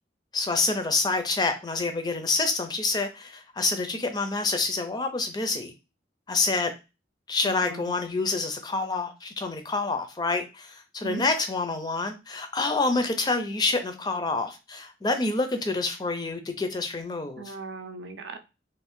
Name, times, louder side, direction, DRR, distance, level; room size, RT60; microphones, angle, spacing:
voice 1, 0.3-5.7 6.3-6.7 7.3-17.5, left 3 dB, 20° left, 7 dB, 0.4 m, -27 dB
voice 2, 7.4-7.9 11.0-11.2 17.4-18.4, right 3 dB, 80° right, 6 dB, 0.5 m, -38 dB
2.6 x 2.4 x 3.5 m, 0.28 s
head